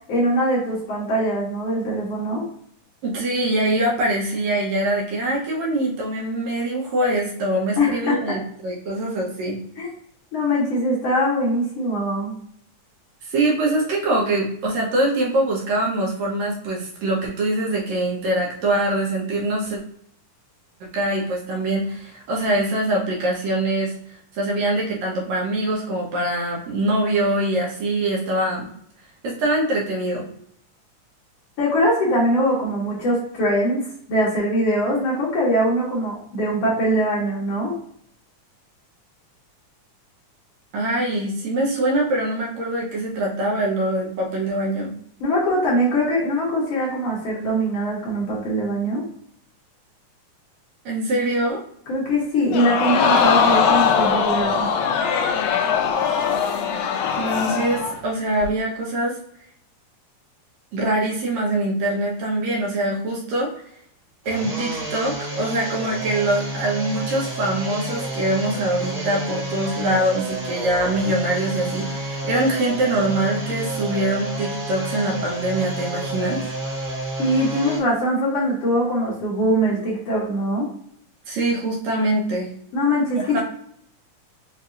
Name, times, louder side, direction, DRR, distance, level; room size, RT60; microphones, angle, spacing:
voice 1, 0.0-2.4 7.8-8.4 9.8-9.9 10.3-12.4 31.6-37.7 45.2-49.0 51.9-54.7 77.2-80.7 82.7-83.4, equal, 60° left, -5 dB, 1.9 m, -22 dB
voice 2, 3.0-9.6 13.2-19.8 20.8-23.9 24.3-28.7 29.2-30.3 40.7-44.9 50.9-51.6 57.2-59.2 60.7-63.5 64.3-76.4 81.3-82.5 83.1-83.4, right 1 dB, 70° right, -3 dB, 2.0 m, -23 dB
Crowd, 52.5-58.0 58.4-58.5, left 6 dB, 80° left, 1.9 m, -20 dB
sound 1, 64.2-77.8, right 1 dB, 50° right, 1.0 m, -30 dB
5.5 x 2.6 x 2.5 m, 0.68 s
omnidirectional pair, 3.6 m